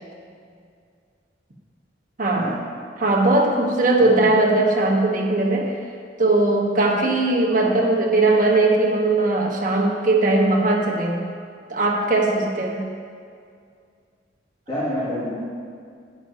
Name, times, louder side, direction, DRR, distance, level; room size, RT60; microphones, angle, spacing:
voice 1, 2.2-2.5 3.0-5.8 6.2-11.3 11.7-12.8, right 2 dB, 45° right, -1 dB, 1.2 m, -19 dB
voice 2, 7.6-7.9 14.7-15.6, left 1 dB, 25° left, -11 dB, 2.3 m, -28 dB
11.5 x 9.8 x 2.8 m, 2.2 s
head